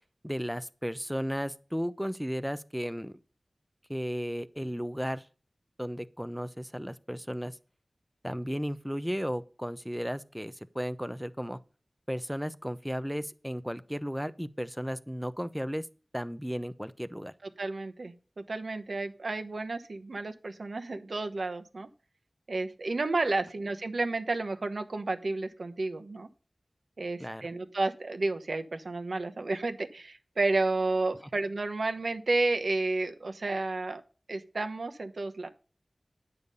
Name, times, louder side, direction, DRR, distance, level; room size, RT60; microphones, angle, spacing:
voice 1, 0.2-3.2 3.9-5.3 5.8-7.6 8.2-11.6 12.1-15.9 16.1-17.3 27.2-27.5, equal, ahead, 0.6 m, -34 dB
voice 2, 17.6-21.9 22.5-26.3 27.0-34.0 34.3-35.5, right 2 dB, 90° right, 1.0 m, -31 dB
9.5 x 6.9 x 5.4 m
wide cardioid pair, 50°, 0 cm